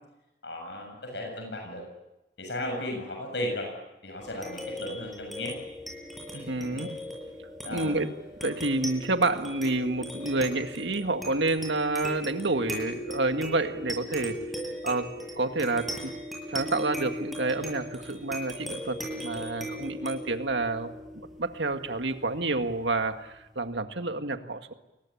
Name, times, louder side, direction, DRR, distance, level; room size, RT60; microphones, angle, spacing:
voice 1, 0.4-1.8 2.4-3.7 4.0-5.6 6.3-6.7 7.6-8.0, left 1 dB, 70° left, 2 dB, 7.3 m, -35 dB
sound 1, 4.2-23.1, equal, ahead, 7.5 m, -38 dB
voice 2, 6.5-7.0 7.7-8.1 8.4-14.4 14.8-16.1 16.5-20.9 21.4-24.7, right 2 dB, 75° right, 6 dB, 2.0 m, -29 dB
29.5 x 22.5 x 8.7 m, 0.95 s
head